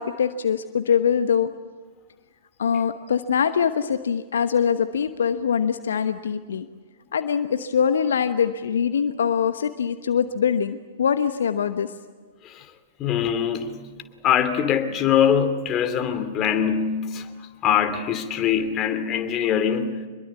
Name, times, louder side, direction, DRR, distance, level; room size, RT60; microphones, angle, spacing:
voice 1, 0.0-1.5 2.6-6.7 7.1-11.9, left 7 dB, 70° left, 10 dB, 1.1 m, -23 dB
voice 2, 13.0-13.8 14.2-20.1, left 8 dB, 30° left, 8 dB, 2.7 m, -23 dB
26.0 x 22.0 x 8.5 m, 1.5 s
figure-of-eight pair, 105°, 0 cm